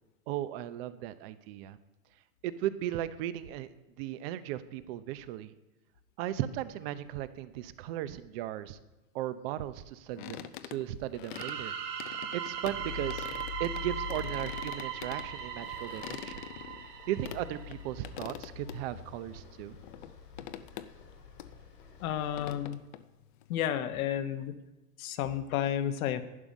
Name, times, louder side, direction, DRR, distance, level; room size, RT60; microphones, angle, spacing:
voice 1, 0.3-1.8 2.4-5.5 6.2-8.8 9.1-11.7 12.3-13.3 13.6-16.4 17.1-19.8, right 12 dB, 40° right, 14 dB, 0.7 m, -36 dB
sound 1, 10.1-11.6 12.0-13.8 14.1-17.4 17.7-17.8 18.0-18.8 19.2-19.3 19.8-20.1 20.4-21.1 21.4-21.5 21.8-23.7, left 12 dB, 35° left, 0.4 m, -45 dB
sound 2, 11.3-18.0, right 9 dB, 80° right, 2.2 m, -39 dB
sound 3, 12.6-22.7, left 9 dB, 85° left, 2.9 m, -46 dB
voice 2, 22.0-22.8 23.5-24.5 25.0-26.2, left 10 dB, 60° left, 10 dB, 1.2 m, -31 dB
11.0 x 11.0 x 5.2 m, 1.1 s
hypercardioid pair, 140°, 47 cm